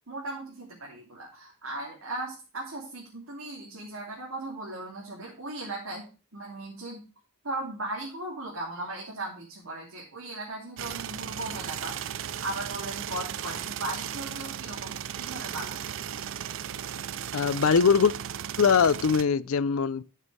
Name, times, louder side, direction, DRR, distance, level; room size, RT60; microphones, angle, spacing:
voice 1, 0.1-6.1 6.3-7.0 7.4-11.9 12.4-15.9, right 2 dB, 80° right, 2.6 m, -37 dB
sound 1, 10.8-19.2, right 9 dB, 60° right, 0.4 m, -36 dB
voice 2, 17.3-18.1 18.6-20.0, left 6 dB, 80° left, 0.5 m, -22 dB
12.0 x 6.6 x 3.3 m
head